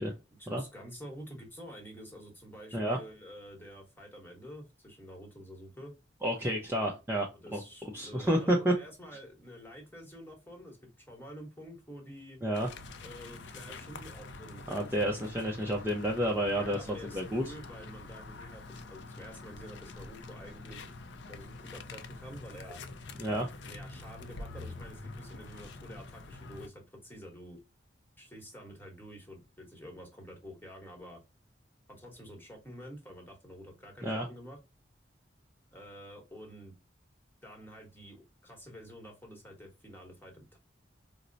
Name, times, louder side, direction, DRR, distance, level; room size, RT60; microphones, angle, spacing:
voice 1, 0.0-5.9 7.3-12.4 13.0-14.9 16.5-21.0 21.3-22.8 23.6-27.6 28.2-31.2 31.9-34.6 35.7-36.7 37.4-40.6, equal, 10° left, 1 dB, 1.1 m, -49 dB
voice 2, 6.2-7.3 7.5-8.7 12.4-12.7 14.7-17.5 23.2-23.5 34.0-34.3, equal, 10° right, -1 dB, 0.5 m, -30 dB
sound 1, 12.5-26.7, left 3 dB, 70° left, 0.5 m, -46 dB
4.2 x 2.0 x 2.5 m, 0.27 s
head